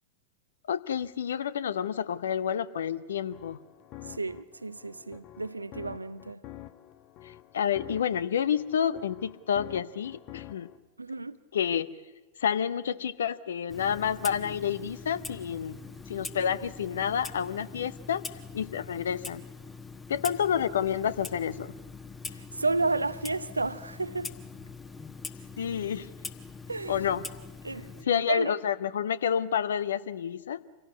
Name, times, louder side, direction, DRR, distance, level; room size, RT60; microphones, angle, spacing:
voice 1, 0.7-3.6 7.2-10.7 11.5-11.9 12.4-15.8 16.1-18.2 18.5-19.4 20.1-21.7 25.6-26.1 26.9-27.3 28.0-30.6, left 8 dB, 65° left, 0.7 m, -29 dB
sound 1, 3.1-10.8, left 13 dB, 40° left, 0.9 m, -48 dB
voice 2, 4.1-6.4 11.0-11.4 22.3-24.3 26.7-27.0 27.6-28.5, right 3 dB, 80° right, 0.6 m, -32 dB
Clock, 13.7-28.0, left 4 dB, 15° left, 1.2 m, -43 dB
26.0 x 17.0 x 8.4 m
figure-of-eight pair, 90°, 0 cm